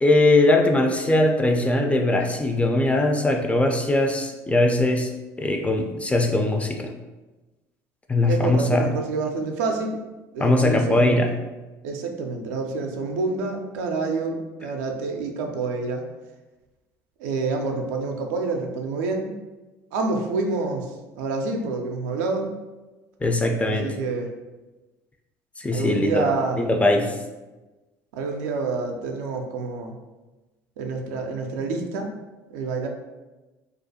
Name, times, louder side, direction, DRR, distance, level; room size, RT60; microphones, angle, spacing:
voice 1, 0.0-5.1 5.4-6.9 8.1-8.9 10.4-11.3 23.2-24.0 25.6-27.2, left 2 dB, 15° left, 4 dB, 0.3 m, -21 dB
voice 2, 8.3-10.0 10.3-11.2 11.8-16.0 17.2-19.3 19.9-22.5 23.6-24.3 25.7-26.6 28.1-30.0 30.8-32.1 32.5-32.9, right 4 dB, 75° right, 3 dB, 0.3 m, -27 dB
2.4 x 2.1 x 2.7 m, 1.1 s
hypercardioid pair, 65°, 9 cm